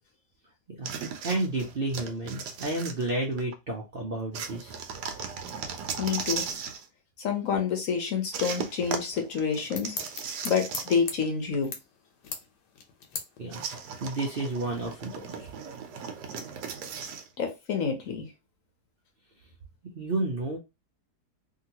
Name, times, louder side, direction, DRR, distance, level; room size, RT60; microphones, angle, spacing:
sound 1, 0.8-3.5 4.3-6.9 8.3-11.3 11.5-11.6 13.5-17.3, right 6 dB, 80° right, 1.2 m, -37 dB
voice 1, 1.2-4.8 13.4-13.6 14.0-15.5 19.9-20.6, right 2 dB, 55° right, -1 dB, 0.6 m, -31 dB
voice 2, 6.0-6.5 7.2-10.0 10.4-11.7 17.4-18.3, left 6 dB, 60° left, 4 dB, 1.0 m, -28 dB
sound 2, 9.2-15.7, left 5 dB, 90° left, 1.4 m, -43 dB
2.8 x 2.8 x 2.8 m, 0.24 s
omnidirectional pair, 1.8 m